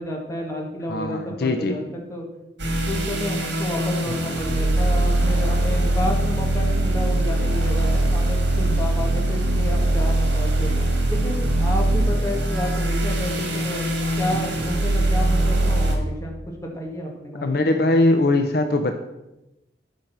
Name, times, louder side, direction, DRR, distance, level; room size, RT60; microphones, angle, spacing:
voice 1, 0.0-2.2 2.9-10.7 11.1-13.9 14.2-17.6, left 1 dB, 15° left, 0 dB, 1.8 m, -31 dB
voice 2, 0.9-1.8 17.4-18.9, left 2 dB, 60° left, 6 dB, 0.6 m, -20 dB
sound 1, 2.6-16.0, right 1 dB, 85° right, 2.2 m, -22 dB
12.0 x 5.2 x 5.9 m, 0.97 s
head